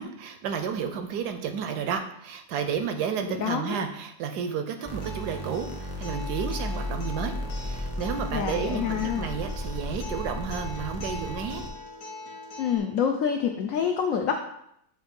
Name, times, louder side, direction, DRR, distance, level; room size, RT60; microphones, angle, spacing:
voice 1, 0.0-11.6, right 7 dB, 70° right, 7 dB, 1.0 m, -32 dB
voice 2, 3.3-3.8 8.3-9.3 12.6-14.3, left 7 dB, 85° left, 4 dB, 0.7 m, -27 dB
Acoustic guitar, 4.8-12.8, left 2 dB, 60° left, 1.7 m, -42 dB
sound 1, 4.8-11.7, left 1 dB, 20° left, 0.3 m, -34 dB
7.8 x 2.6 x 5.2 m, 0.76 s
omnidirectional pair, 2.0 m